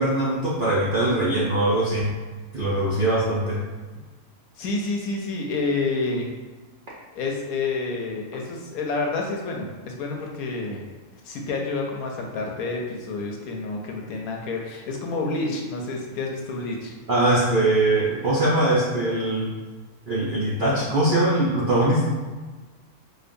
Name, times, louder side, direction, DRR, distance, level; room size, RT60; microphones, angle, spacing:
voice 1, 0.0-2.1 2.5-3.6 17.1-19.5 20.1-22.1, right 1 dB, 65° right, -7 dB, 0.5 m, -22 dB
voice 2, 4.6-6.3 7.1-10.8 11.2-16.9, left 3 dB, 75° left, 0 dB, 1.0 m, -29 dB
5.0 x 2.3 x 2.5 m, 1.3 s
omnidirectional pair, 1.6 m